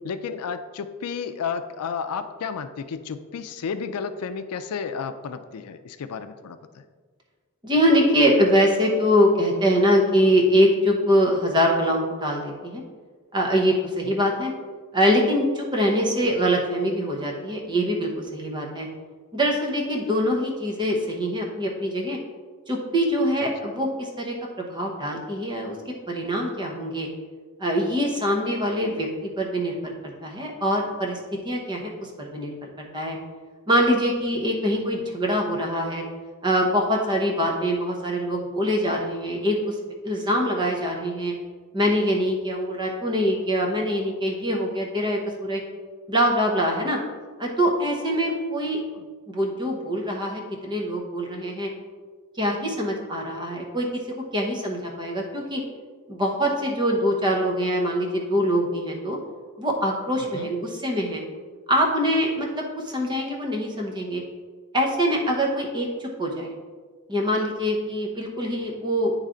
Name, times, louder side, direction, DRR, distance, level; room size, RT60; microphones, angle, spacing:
voice 1, 0.0-6.8 14.0-14.2 23.4-23.7 34.7-35.0 48.9-49.1 60.2-60.5, left 6 dB, 85° left, 10 dB, 0.4 m, -32 dB
voice 2, 7.6-12.8 13.3-14.5 14.9-18.9 19.3-22.2 22.7-27.1 27.6-29.1 29.4-31.2 31.4-32.5 32.8-33.2 33.7-36.0 36.4-39.8 40.0-41.3 41.7-45.6 46.1-47.0 47.4-48.8 49.3-51.7 52.4-53.9 54.3-55.6 56.1-59.2 59.6-61.2 61.7-64.2 64.7-66.5 67.1-69.1, equal, 20° right, 0 dB, 0.9 m, -24 dB
9.5 x 3.2 x 3.8 m, 1.5 s
head